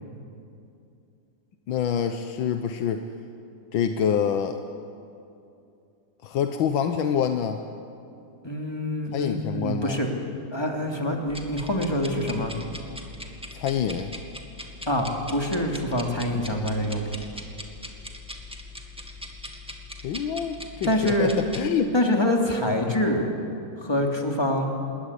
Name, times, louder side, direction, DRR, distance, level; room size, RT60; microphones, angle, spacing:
voice 1, 1.7-3.1 3.7-4.6 6.2-7.6 9.1-10.0 13.5-14.1 20.0-21.9 22.9-23.0, left 8 dB, 90° left, 7 dB, 1.7 m, -26 dB
voice 2, 8.4-10.1 10.5-12.5 14.9-17.2 20.8-21.3 21.9-23.3 23.8-24.6, left 1 dB, 15° left, 1 dB, 3.1 m, -25 dB
sound 1, 11.3-21.7, left 1 dB, 5° right, 2.0 m, -41 dB
26.5 x 21.0 x 10.0 m, 2.6 s
omnidirectional pair, 2.1 m